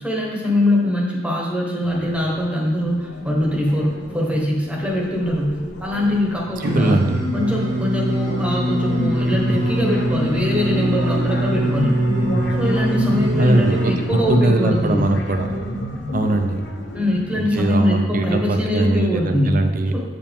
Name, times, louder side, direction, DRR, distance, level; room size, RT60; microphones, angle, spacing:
voice 1, 0.0-7.0 7.3-12.0 12.5-15.0 16.9-19.6 19.9-20.0, left 1 dB, 5° right, -3 dB, 1.0 m, -22 dB
sound 1, 1.8-17.8, left 1 dB, 75° left, 0.8 m, -29 dB
voice 2, 6.6-7.2 13.4-15.5 16.1-16.7 17.4-19.9, right 2 dB, 50° right, 6 dB, 0.6 m, -21 dB
Singing, 6.6-13.8, right 1 dB, 80° right, 1.6 m, -23 dB
7.9 x 5.0 x 3.5 m, 1.3 s
head